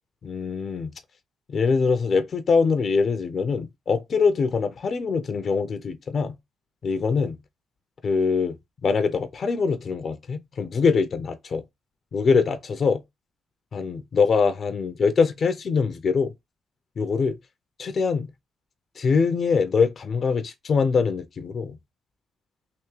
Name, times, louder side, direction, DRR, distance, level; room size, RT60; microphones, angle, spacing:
voice 1, 0.2-0.9 1.5-6.4 6.8-7.4 8.0-8.6 8.8-11.6 12.1-13.0 13.7-16.3 17.0-17.4 17.8-18.3 19.0-21.8, left 5 dB, 50° left, 0.5 m, -23 dB
3.5 x 2.6 x 3.1 m
cardioid pair, 90°, 0 cm